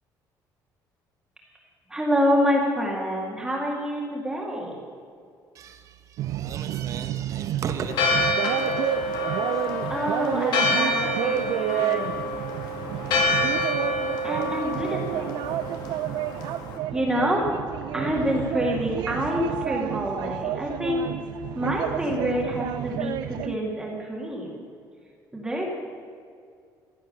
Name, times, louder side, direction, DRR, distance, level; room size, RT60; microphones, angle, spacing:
voice 1, 1.9-4.8 9.9-12.2 14.2-15.4 16.9-17.4 17.9-21.0 21.6-24.5 25.3-25.6, equal, 10° right, -2 dB, 2.0 m, -27 dB
voice 2, 5.5-8.0 9.5-9.7, right 7 dB, 45° right, 9 dB, 1.1 m, -36 dB
sound 1, 6.2-23.6, right 13 dB, 75° right, 0.5 m, -31 dB
Church bell, 7.9-16.8, left 1 dB, 75° left, 2.3 m, -27 dB
Brass instrument, 7.9-12.3, left 4 dB, 25° left, 2.5 m, -39 dB
15.5 x 11.0 x 6.6 m, 2.3 s
cardioid pair, 175°, 8 cm